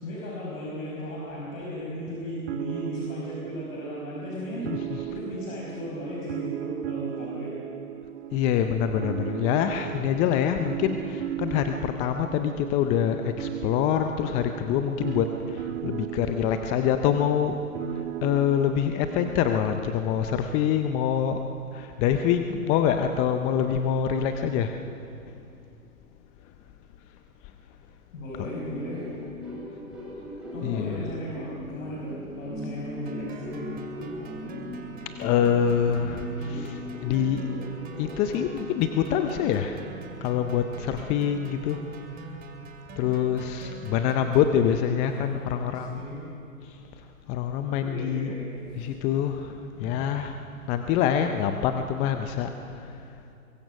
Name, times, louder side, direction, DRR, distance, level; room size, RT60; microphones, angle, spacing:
voice 1, 0.0-7.5 28.1-29.1 30.5-33.7 45.0-46.2 47.8-49.4 49.7-50.3, equal, 60° left, -4 dB, 5.7 m, -36 dB
sound 1, 2.5-19.9, right 14 dB, 50° right, 0.7 m, -37 dB
voice 2, 4.7-5.0 8.3-17.6 17.9-21.4 21.7-24.8 25.3-25.4 28.4-28.5 30.6-31.1 35.2-37.5 38.0-39.9 40.2-41.8 43.0-46.0 46.6-48.3 48.8-50.4 50.7-53.1, left 8 dB, 15° left, 7 dB, 0.5 m, -26 dB
sound 2, 28.4-38.6, left 1 dB, ahead, 7.9 m, -39 dB
sound 3, 33.1-44.6, right 3 dB, 20° right, 2.3 m, -43 dB
22.5 x 22.5 x 6.3 m, 2.6 s
hypercardioid pair, 120°, 44 cm